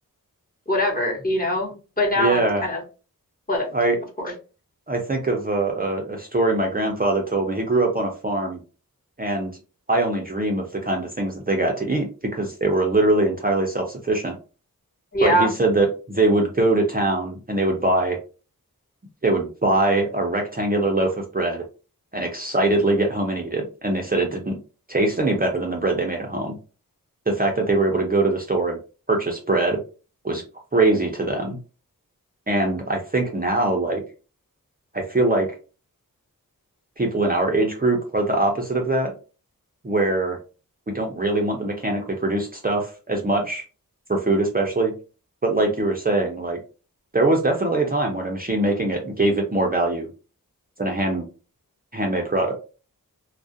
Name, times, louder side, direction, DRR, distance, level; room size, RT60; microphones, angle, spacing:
voice 1, 0.7-2.8 3.5-3.7 4.2-4.3 15.1-15.5, equal, 25° left, -2 dB, 1.0 m, -23 dB
voice 2, 2.2-2.6 3.7-4.0 4.9-8.6 9.2-9.5 9.9-14.4 15.2-18.2 19.2-21.6 22.1-24.6 24.9-26.5 27.3-28.8 29.1-29.8 30.2-30.4 30.7-31.6 32.5-34.0 34.9-35.5 37.0-39.1 39.8-40.4 40.9-43.6 44.1-44.9 45.4-46.6 47.1-50.1 50.8-51.3 51.9-52.5, right 2 dB, 25° right, 1 dB, 0.5 m, -22 dB
2.3 x 2.1 x 2.6 m, 0.34 s
wide cardioid pair, 45°, 35 cm